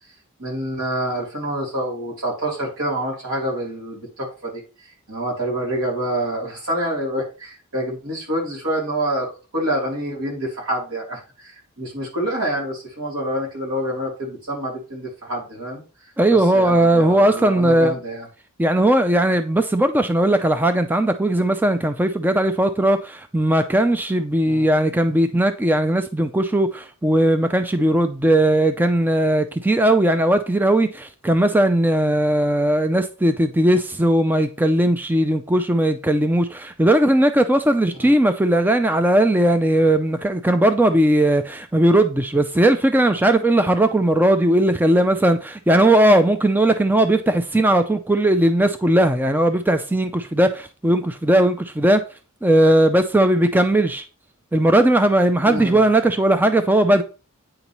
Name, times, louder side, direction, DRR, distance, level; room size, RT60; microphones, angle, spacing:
voice 1, 0.4-9.3 9.5-18.3 24.5-24.7 38.0-38.1 55.4-55.9, right 1 dB, 75° right, 3.2 m, -27 dB
voice 2, 16.2-17.9 18.6-52.0 52.4-54.0 54.5-57.0, right 1 dB, 10° right, 0.4 m, -18 dB
8.8 x 5.4 x 3.0 m
head